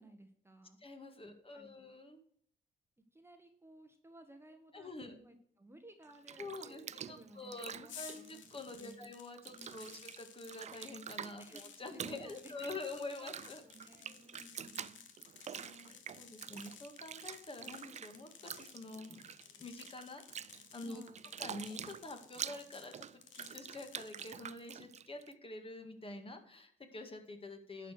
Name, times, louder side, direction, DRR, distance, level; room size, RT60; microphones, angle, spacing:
voice 1, 0.0-0.8 1.2-1.9 3.1-8.4 8.8-9.1 9.5-10.1 11.4-11.7 11.9-12.8 13.2-13.3 13.6-15.0 20.9-21.3, right 1 dB, 10° right, 6 dB, 1.3 m, -58 dB
voice 2, 0.8-2.2 4.7-5.2 6.4-9.9 10.2-13.6 14.0-14.3 15.6-19.2 19.5-21.0 21.4-27.9, left 2 dB, 25° left, 6 dB, 1.9 m, -47 dB
Bathtub (filling or washing), 6.0-9.1 9.3-25.3, right 8 dB, 35° right, 0.4 m, -47 dB
sound 1, 7.9-24.4, left 8 dB, 70° left, 1.5 m, -56 dB
11.0 x 5.0 x 6.5 m, 0.64 s
cardioid pair, 90°, 20 cm